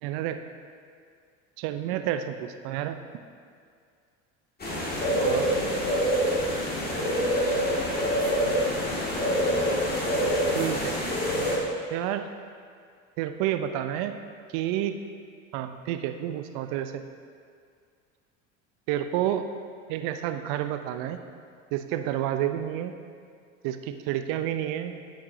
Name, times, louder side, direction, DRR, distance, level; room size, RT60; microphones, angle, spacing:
voice 1, 0.0-0.4 1.6-3.0 5.2-5.6 10.5-11.0 11.9-12.3 13.2-14.2 14.5-15.0 15.5-17.0 18.9-19.4 19.9-21.2 21.7-22.9 23.6-24.9, right 11 dB, 65° right, 8 dB, 0.7 m, -29 dB
sound 1, 4.6-11.6, equal, 25° left, 2.0 m, -26 dB
12.5 x 5.9 x 2.7 m, 2.2 s
hypercardioid pair, 75°, 38 cm